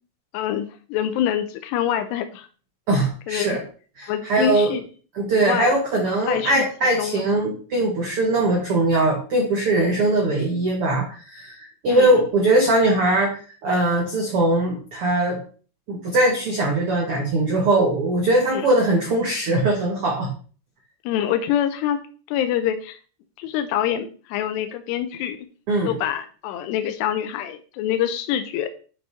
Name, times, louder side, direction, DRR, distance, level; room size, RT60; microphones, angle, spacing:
voice 1, 0.3-2.5 3.3-3.5 4.1-4.8 5.3-5.8 6.3-6.6 7.0-7.2 11.9-12.2 18.5-18.7 21.1-22.0 22.3-23.0 23.4-25.4 25.8-28.7, left 10 dB, 85° left, 8 dB, 2.7 m, -25 dB
voice 2, 2.9-3.6 4.0-4.7 5.1-15.4 15.9-20.3 25.7-25.9, right 2 dB, 80° right, 0 dB, 1.2 m, -21 dB
8.3 x 5.5 x 4.1 m, 0.40 s
omnidirectional pair, 4.9 m